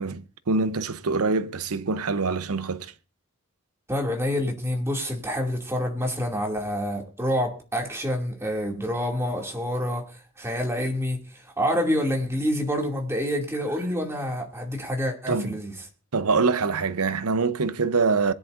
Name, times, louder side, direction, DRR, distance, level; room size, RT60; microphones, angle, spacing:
voice 1, 0.0-2.9 15.3-15.6 16.1-18.3, right 4 dB, 85° right, 0.8 m, -25 dB
voice 2, 3.9-15.7, equal, 10° right, 2.5 m, -27 dB
22.5 x 10.5 x 2.6 m
head